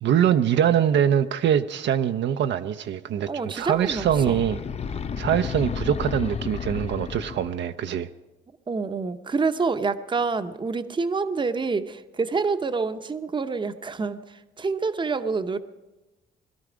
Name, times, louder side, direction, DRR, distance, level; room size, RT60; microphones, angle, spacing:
voice 1, 0.0-4.6 5.2-8.1, right 9 dB, 65° right, 8 dB, 0.6 m, -23 dB
voice 2, 3.3-4.5 8.7-14.2 14.6-15.6, right 4 dB, 25° right, 10 dB, 0.7 m, -27 dB
sound 1, 3.7-7.6, left 6 dB, 30° left, 0.5 m, -32 dB
21.0 x 12.0 x 5.0 m, 1.1 s
cardioid pair, 90°, 20 cm